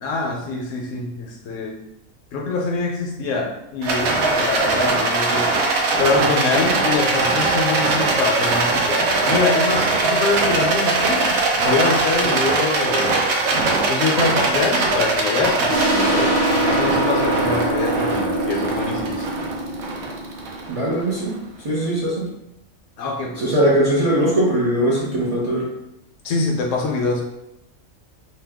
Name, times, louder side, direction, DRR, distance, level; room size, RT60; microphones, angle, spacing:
voice 1, 0.0-1.8 2.3-5.5 6.0-13.2 13.9-19.3 23.0-23.5 26.2-27.2, left 3 dB, 70° left, 0 dB, 0.9 m, -24 dB
Rattle, 3.8-21.2, right 3 dB, 85° right, 1.0 m, -21 dB
sound 1, 15.7-21.0, right 1 dB, 60° right, 1.3 m, -23 dB
voice 2, 20.7-21.3 21.6-22.2 23.4-25.7, right 1 dB, 40° right, -7 dB, 0.5 m, -20 dB
2.8 x 2.1 x 3.4 m, 0.86 s
omnidirectional pair, 1.4 m